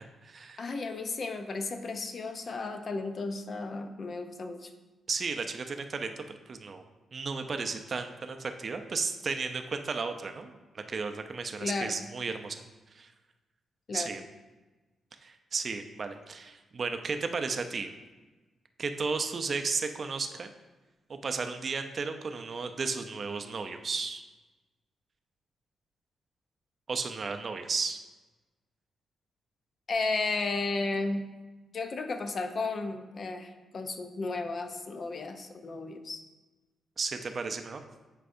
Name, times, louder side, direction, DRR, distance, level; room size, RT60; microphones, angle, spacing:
voice 1, 0.0-0.7 5.1-6.8 7.1-12.6 12.9-13.1 13.9-14.2 15.2-17.9 18.8-20.5 21.1-24.2 26.9-28.0 37.0-37.8, right 4 dB, 45° right, 7 dB, 0.5 m, -34 dB
voice 2, 0.6-4.7 11.6-12.0 13.9-14.1 29.9-31.3 31.7-36.2, left 3 dB, 50° left, 7 dB, 0.6 m, -34 dB
10.0 x 4.6 x 2.6 m, 1.2 s
cardioid pair, 95°, 0 cm